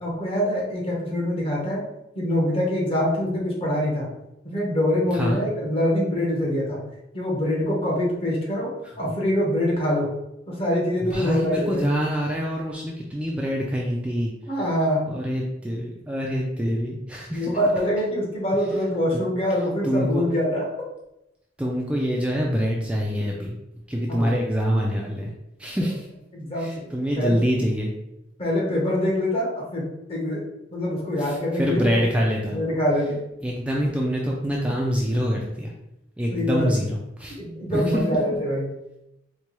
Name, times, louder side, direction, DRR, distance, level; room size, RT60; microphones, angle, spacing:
voice 1, 0.0-1.8 2.1-4.1 4.4-6.8 7.1-8.7 9.0-10.1 10.5-12.0 14.5-15.0 17.3-20.7 24.2-24.3 26.3-26.9 27.2-27.4 28.4-30.4 30.7-32.0 32.5-33.2 36.3-36.7 37.4-38.7, left 1 dB, 30° left, -3 dB, 0.9 m, -24 dB
voice 2, 5.1-5.4 11.1-14.3 15.1-17.5 19.1-19.2 19.8-20.2 21.6-23.5 23.9-25.3 25.6-26.1 26.6-27.9 31.2-32.6 33.4-35.7 36.2-37.4 37.7-37.9, equal, 5° right, -3 dB, 0.3 m, -25 dB
4.4 x 2.2 x 3.0 m, 0.87 s
head